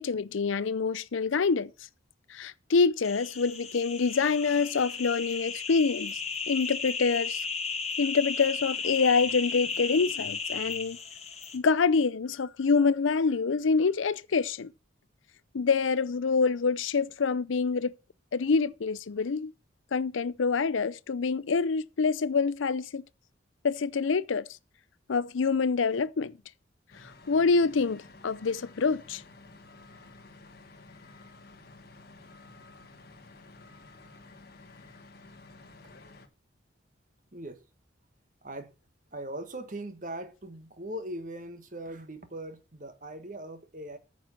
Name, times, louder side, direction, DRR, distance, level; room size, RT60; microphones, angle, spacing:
voice 1, 0.0-1.7 2.3-6.2 6.5-7.4 8.0-11.0 11.5-14.7 15.5-17.9 18.3-19.5 19.9-23.0 23.6-24.5 25.1-26.3 27.3-29.2, left 4 dB, 85° left, 0.5 m, -26 dB
sound 1, 3.0-11.6, left 5 dB, 35° left, 1.5 m, -35 dB
sound 2, 26.9-36.3, left 3 dB, 50° left, 1.3 m, -52 dB
voice 2, 38.4-38.7 39.1-44.0, right 1 dB, 45° right, 1.5 m, -40 dB
9.4 x 6.1 x 7.4 m
head